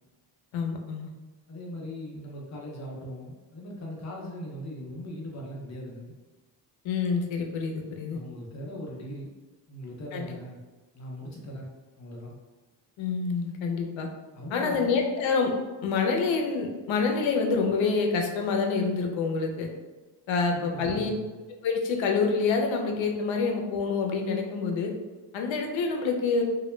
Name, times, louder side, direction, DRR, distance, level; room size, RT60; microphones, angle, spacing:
voice 1, 0.5-1.1 6.8-8.2 10.1-10.3 13.0-14.1 14.5-15.5 15.8-19.7 20.3-21.1 21.6-24.9 25.3-26.4, left 4 dB, 85° left, 3 dB, 0.6 m, -27 dB
voice 2, 1.5-6.1 8.1-9.3 9.7-10.6 10.9-11.7 12.0-12.3 14.3-15.0 20.5-21.3, equal, 40° left, -2 dB, 0.6 m, -39 dB
2.2 x 2.1 x 3.1 m, 1.2 s
wide cardioid pair, 140°, 45 cm